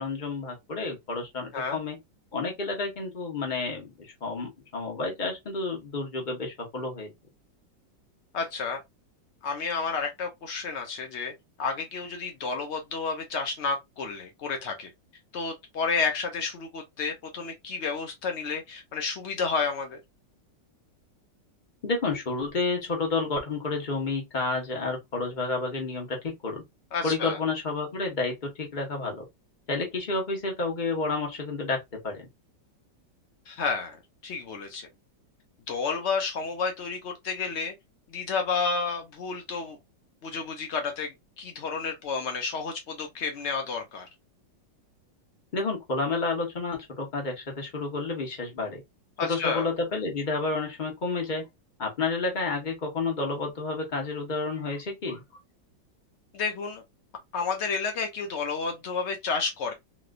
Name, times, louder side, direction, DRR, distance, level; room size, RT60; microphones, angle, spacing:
voice 1, 0.0-2.0 2.3-3.9 4.2-7.1 21.8-26.6 27.0-29.3 29.7-32.3 45.5-48.8 49.2-51.5 51.8-55.2, left 3 dB, 35° left, 0.9 m, -30 dB
voice 2, 8.3-8.8 9.4-11.3 11.6-14.9 15.3-20.0 26.9-27.4 33.5-34.9 35.7-37.7 38.1-39.8 40.2-44.1 49.2-49.7 56.3-56.8 57.3-59.7, left 5 dB, 85° left, 0.6 m, -31 dB
3.0 x 3.0 x 2.4 m
omnidirectional pair, 2.0 m